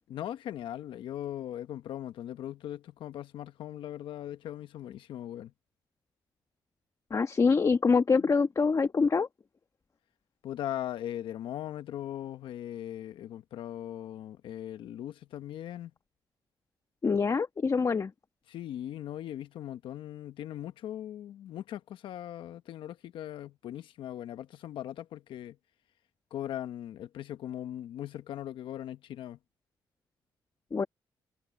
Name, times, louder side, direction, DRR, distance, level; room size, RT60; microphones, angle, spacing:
voice 1, 0.1-5.5 8.2-8.3 10.4-15.9 18.5-25.6 26.3-29.4, left 11 dB, 85° left, 1.1 m, -39 dB
voice 2, 7.1-9.3 17.0-18.1 30.7-30.9, left 5 dB, 40° left, 1.3 m, -25 dB
cardioid pair, 75°, 9 cm